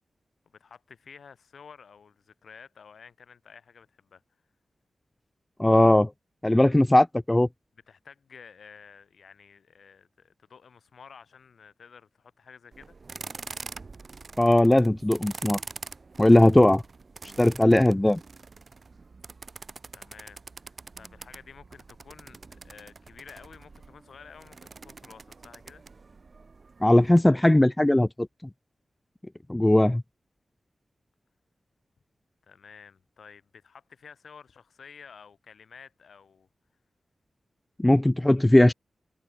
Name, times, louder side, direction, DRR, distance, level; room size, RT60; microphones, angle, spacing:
voice 1, 0.4-4.2 7.9-13.0 19.9-25.8 32.4-36.5, left 6 dB, 80° left, 7.8 m, -51 dB
voice 2, 5.6-6.1 6.4-7.5 14.4-15.6 16.2-16.8 17.4-18.2 26.8-28.3 29.5-30.0 37.8-38.7, left 1 dB, 15° left, 0.5 m, -19 dB
sound 1, 12.7-27.2, right 4 dB, 50° right, 3.6 m, -45 dB
wide cardioid pair, 80°, 0 cm